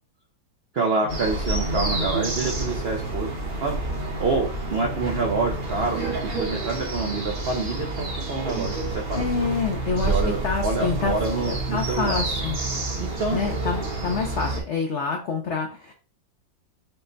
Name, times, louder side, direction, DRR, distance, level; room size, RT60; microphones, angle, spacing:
voice 1, 0.7-3.3 3.6-3.8 4.2-9.3 10.1-12.2 13.2-13.4, right 3 dB, 70° right, 1 dB, 0.5 m, -27 dB
sound 1, 1.1-14.6, right 2 dB, 35° right, 0.9 m, -28 dB
voice 2, 9.1-11.1 11.4-12.6 13.3-15.9, left 5 dB, 80° left, 3 dB, 0.6 m, -27 dB
5.8 x 2.2 x 3.9 m, 0.37 s
omnidirectional pair, 2.0 m